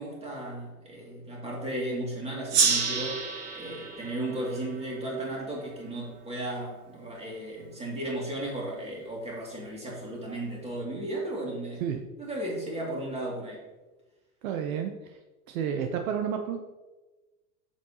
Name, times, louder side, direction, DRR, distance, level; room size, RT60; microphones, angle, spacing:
voice 1, 0.0-3.3 3.5-11.8 12.2-13.6, right 1 dB, 15° right, -3 dB, 2.5 m, -35 dB
Gong, 2.5-5.6, right 6 dB, 40° right, 1.5 m, -29 dB
voice 2, 14.4-15.2 15.5-16.7, right 8 dB, 60° right, 5 dB, 0.9 m, -31 dB
8.8 x 7.3 x 2.9 m, 1.2 s
supercardioid pair, 130°, 45 cm